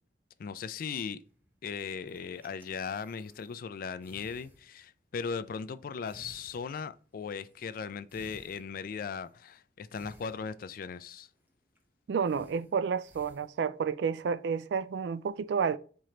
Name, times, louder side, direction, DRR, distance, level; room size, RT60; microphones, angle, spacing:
voice 1, 0.4-1.2 1.6-11.3, left 6 dB, 55° left, 0.3 m, -38 dB
sound 1, 1.2-3.7 4.0-5.1 5.4-5.8 6.1-9.4 9.9-11.5 11.8-11.9 12.3-13.6, right 1 dB, 10° right, 0.8 m, -58 dB
voice 2, 12.1-15.8, right 6 dB, 70° right, 0.3 m, -30 dB
4.4 x 3.2 x 3.7 m
head